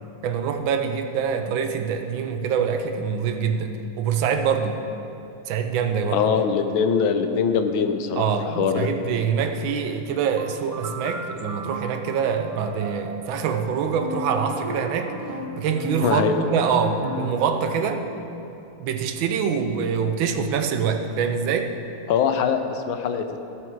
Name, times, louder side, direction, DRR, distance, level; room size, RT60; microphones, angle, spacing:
voice 1, 0.2-4.8 5.5-6.2 8.1-15.1 15.6-18.0 18.8-21.8, right 6 dB, 80° right, 7 dB, 1.4 m, -25 dB
voice 2, 6.1-8.9 16.0-16.4 22.1-23.4, left 6 dB, 80° left, 7 dB, 1.5 m, -22 dB
sound 1, 10.4-17.4, right 1 dB, 40° right, 0.5 m, -33 dB
14.5 x 6.4 x 4.6 m, 2.8 s
omnidirectional pair, 2.2 m